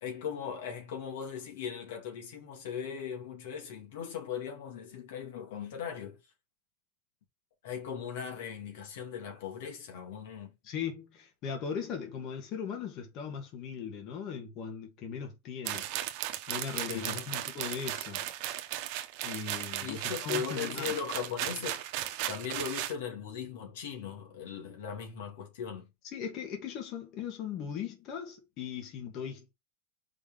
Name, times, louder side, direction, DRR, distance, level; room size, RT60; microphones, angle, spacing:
voice 1, 0.0-6.2 7.6-10.5 16.9-17.3 19.8-25.9, left 7 dB, 70° left, 2.3 m, -39 dB
voice 2, 10.6-18.3 19.2-20.9 26.1-29.5, left 7 dB, 45° left, 2.1 m, -39 dB
sound 1, 15.7-23.0, right 13 dB, 55° right, 0.9 m, -36 dB
5.0 x 3.7 x 5.0 m
supercardioid pair, 120°, 0 cm